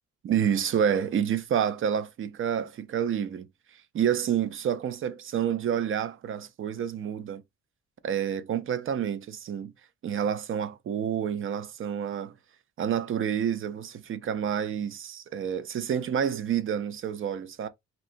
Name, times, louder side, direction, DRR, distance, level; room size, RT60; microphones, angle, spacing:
voice 1, 0.2-3.5 3.9-7.4 8.0-9.7 10.0-12.3 12.8-17.7, right 8 dB, 45° right, 0.4 m, -28 dB
2.8 x 2.3 x 2.4 m
cardioid pair, 90°, 30 cm